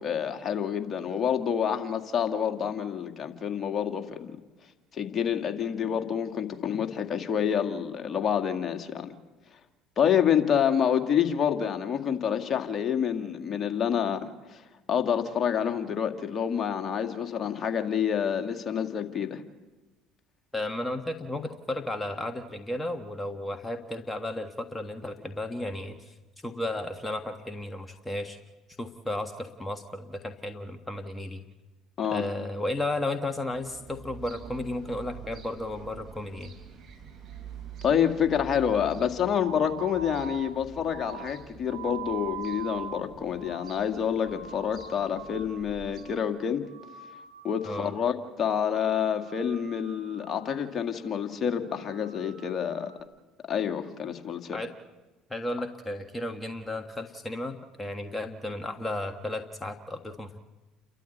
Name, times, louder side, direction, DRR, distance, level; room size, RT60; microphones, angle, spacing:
voice 1, 0.0-4.4 4.9-9.1 10.0-14.6 14.9-19.4 32.0-32.3 37.8-46.6 47.4-52.9 53.5-54.6, left 8 dB, 40° left, 6 dB, 2.1 m, -28 dB
voice 2, 20.5-26.1 26.4-28.4 28.8-31.4 32.1-36.5 47.6-47.9 54.5-54.7 55.3-60.4, left 1 dB, 15° left, 6 dB, 1.6 m, -34 dB
sound 1, 33.5-46.0, right 6 dB, 50° right, 6.3 m, -47 dB
sound 2, 38.6-45.6 45.9-46.4 46.6-48.1 48.4-48.8 49.1-50.6 50.9-51.3 51.6-53.0, right 8 dB, 90° right, 2.3 m, -44 dB
29.5 x 13.0 x 8.1 m, 1.2 s
hypercardioid pair, 60°, 0 cm